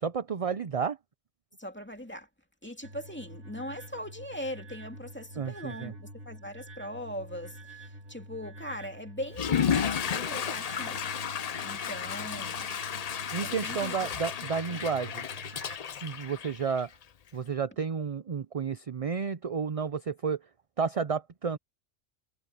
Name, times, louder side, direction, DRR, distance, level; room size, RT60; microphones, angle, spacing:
voice 1, 0.0-1.0 5.4-5.9 13.3-15.2 16.0-16.9 17.3-20.4 20.8-21.6, right 6 dB, 40° right, 0.5 m, -31 dB
voice 2, 1.6-2.3 2.6-11.1 11.6-12.7 13.4-14.1, equal, 10° left, 2.3 m, -40 dB
sound 1, 2.8-15.8, right 1 dB, 70° right, 3.4 m, -47 dB
Water / Toilet flush, 9.3-17.0, left 7 dB, 50° left, 0.5 m, -32 dB
omnidirectional pair, 1.3 m